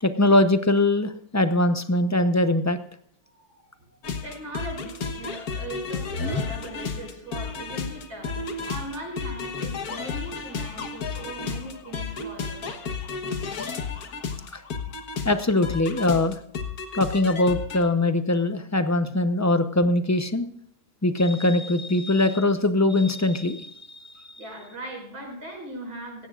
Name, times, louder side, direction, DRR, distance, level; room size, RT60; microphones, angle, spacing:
voice 1, 0.0-2.8 14.5-14.6 15.2-16.4 16.9-20.5 21.0-24.2, left 2 dB, 15° left, 9 dB, 0.6 m, -22 dB
sound 1, 4.0-17.8, left 5 dB, 75° left, 1.8 m, -32 dB
voice 2, 4.1-12.9 14.8-14.9 24.4-26.3, right 1 dB, 80° right, 0 dB, 6.3 m, -39 dB
17.0 x 16.0 x 2.5 m, 0.70 s
omnidirectional pair, 1.6 m